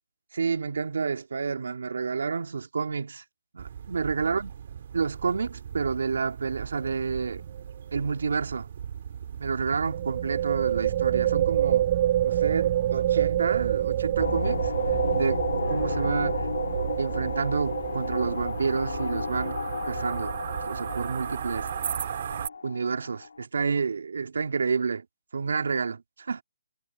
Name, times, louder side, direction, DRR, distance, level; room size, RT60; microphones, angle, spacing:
voice 1, 0.3-3.2 3.5-4.5 4.9-7.4 7.9-8.7 9.4-11.9 12.2-14.7 15.1-15.4 15.7-16.5 17.0-19.6 19.9-20.3 20.7-21.7 22.6-25.1 25.3-26.4, right 5 dB, 80° right, 2.4 m, -29 dB
sound 1, 3.6-22.5, right 8 dB, 50° right, 3.5 m, -38 dB
sound 2, 6.8-7.0 7.3-7.4 9.9-21.2, right 12 dB, 30° right, 0.7 m, -28 dB
sound 3, 14.2-23.4, left 5 dB, 85° left, 2.7 m, -33 dB
hypercardioid pair, 165°, 0 cm